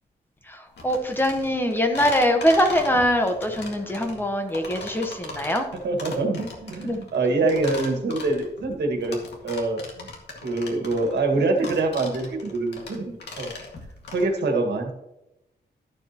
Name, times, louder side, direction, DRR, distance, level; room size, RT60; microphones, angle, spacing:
voice 1, 0.5-5.7 6.8-7.0, equal, 10° left, 4 dB, 1.0 m, -23 dB
sound 1, 0.8-14.2, left 3 dB, 85° left, 2.0 m, -39 dB
voice 2, 5.8-9.2 9.4-10.1 10.4-13.5 14.1-14.9, right 3 dB, 85° right, 3 dB, 1.8 m, -25 dB
12.5 x 7.2 x 2.9 m, 0.88 s
wide cardioid pair, 140°, 17 cm